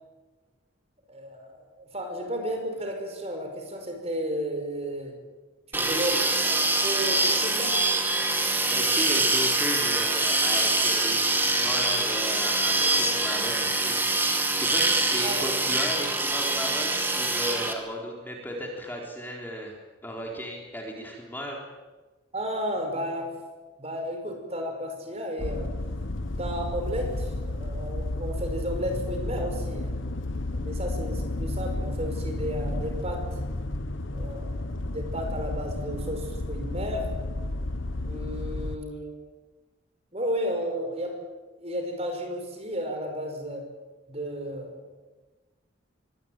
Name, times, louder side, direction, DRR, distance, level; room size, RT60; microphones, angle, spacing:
voice 1, 1.1-5.2 5.7-6.1 6.4-7.8 15.2-15.5 22.3-23.3 23.8-25.7 26.4-30.0 30.5-33.2 34.1-37.1 38.0-39.2 40.1-41.2 41.6-43.7 44.1-45.0, equal, 30° right, 4 dB, 5.6 m, -33 dB
sound 1, 5.7-17.7, right 2 dB, 10° right, 2.4 m, -24 dB
voice 2, 5.8-6.3 8.7-14.0 14.5-19.7 20.0-21.6, equal, 10° left, 0 dB, 3.8 m, -35 dB
sound 2, 25.4-38.8, left 2 dB, 80° left, 1.3 m, -32 dB
24.0 x 19.5 x 9.1 m, 1.2 s
head